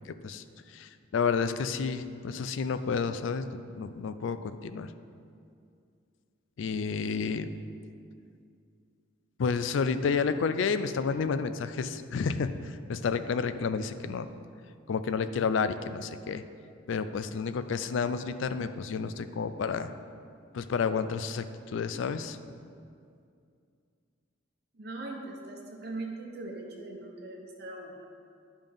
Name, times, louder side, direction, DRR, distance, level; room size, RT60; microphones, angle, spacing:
voice 1, 0.7-3.5 3.7-4.9 6.6-7.5 9.4-14.3 14.9-16.4 16.9-19.9 20.5-22.4, left 5 dB, 70° left, 12 dB, 0.3 m, -30 dB
voice 2, 24.7-28.1, right 2 dB, 50° right, 0 dB, 0.7 m, -40 dB
9.6 x 5.2 x 3.6 m, 2.3 s
head